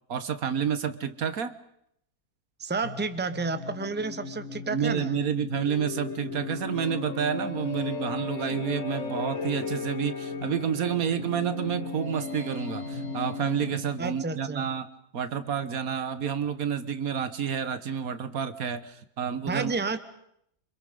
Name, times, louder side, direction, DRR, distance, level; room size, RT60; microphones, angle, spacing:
voice 1, 0.1-1.6 4.7-19.7, right 8 dB, 75° right, 12 dB, 1.7 m, -29 dB
voice 2, 2.6-5.2 14.0-14.7 19.5-20.0, right 3 dB, 10° right, 11 dB, 1.0 m, -31 dB
sound 1, 2.8-14.2, left 4 dB, 55° left, 3.3 m, -36 dB
27.5 x 25.5 x 5.4 m, 0.74 s
omnidirectional pair, 1.5 m